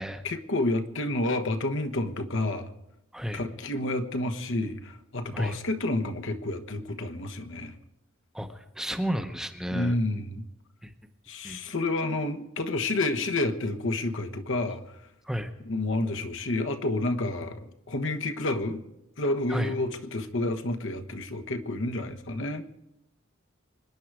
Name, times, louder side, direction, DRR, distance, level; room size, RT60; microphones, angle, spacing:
voice 1, 0.2-2.7 3.3-7.7 9.7-10.5 11.3-14.8 15.6-18.8 19.2-22.6, left 2 dB, 65° left, 6 dB, 1.2 m, -29 dB
voice 2, 8.3-9.9 10.8-10.9 11.4-11.6 15.3-15.5 19.5-19.7, equal, 5° right, 6 dB, 0.8 m, -32 dB
25.5 x 10.5 x 4.8 m, 0.86 s
head